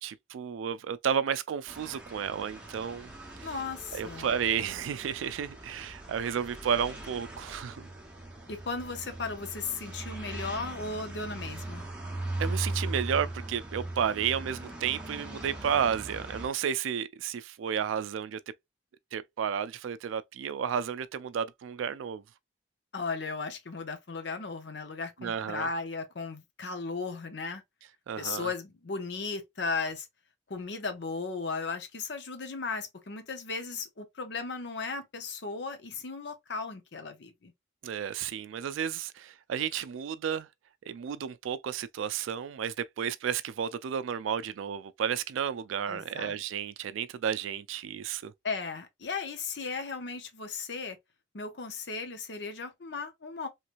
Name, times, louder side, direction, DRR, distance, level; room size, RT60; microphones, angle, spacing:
voice 1, 0.0-3.6 3.9-7.9 12.4-18.4 19.1-22.2 25.2-25.7 28.1-28.5 37.8-40.5 40.9-48.3, right 8 dB, 85° right, 0.3 m, -32 dB
sound 1, 1.7-16.5, right 2 dB, 5° right, 0.9 m, -39 dB
voice 2, 3.4-4.3 8.5-11.8 22.9-27.6 28.2-30.1 30.5-37.5 45.9-46.4 48.4-51.0 51.3-53.5, left 4 dB, 65° left, 0.7 m, -36 dB
3.2 x 3.0 x 2.4 m
head